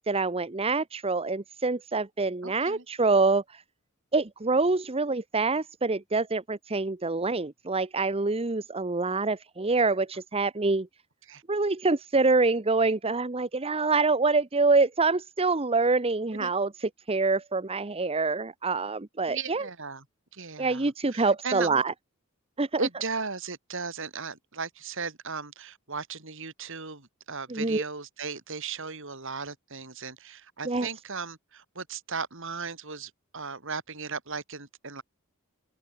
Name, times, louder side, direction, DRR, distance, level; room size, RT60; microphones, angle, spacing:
voice 1, 0.1-3.6 4.1-10.9 11.5-19.6 20.6-21.9 22.6-22.8 27.5-27.8 30.6-30.9, right 3 dB, 30° right, 0.9 m, -26 dB
voice 2, 2.4-2.8 11.3-11.4 16.4-16.5 19.3-20.0 20.3-21.8 22.8-35.0, right 5 dB, 65° right, 4.1 m, -36 dB
head